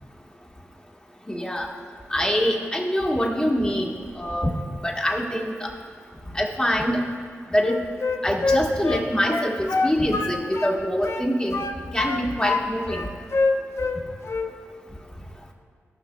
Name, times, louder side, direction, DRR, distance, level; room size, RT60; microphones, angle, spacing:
voice 1, 1.3-1.7 2.1-4.5 4.8-5.5 6.3-7.0 7.5-7.8 8.2-11.7 11.9-13.0, equal, 15° left, -1 dB, 1.5 m, -24 dB
Wind instrument woodwind instrument, 7.6-10.8 11.0-12.6 12.9-14.0 14.2-14.5, left 3 dB, 60° left, 0.6 m, -25 dB
17.0 x 6.0 x 2.3 m, 2.1 s
cardioid pair, 45°, 5 cm